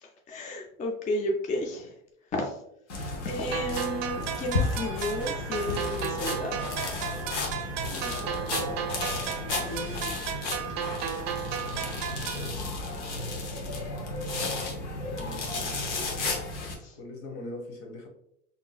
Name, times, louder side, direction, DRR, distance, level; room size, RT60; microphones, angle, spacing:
voice 1, 0.0-2.0 2.3-2.6 3.2-6.9 9.5-10.4 12.5-12.7 16.8-17.0, left 1 dB, 20° left, 2 dB, 0.4 m, -33 dB
sound 1, 2.9-16.7, left 3 dB, 85° left, 0.8 m, -33 dB
sound 2, 3.5-12.5, right 9 dB, 50° right, 0.5 m, -34 dB
voice 2, 7.9-9.2 14.3-14.8 15.2-15.9 17.0-18.1, left 1 dB, 60° left, 4 dB, 1.0 m, -43 dB
3.7 x 2.7 x 2.2 m, 0.73 s
hypercardioid pair, 85°, 35 cm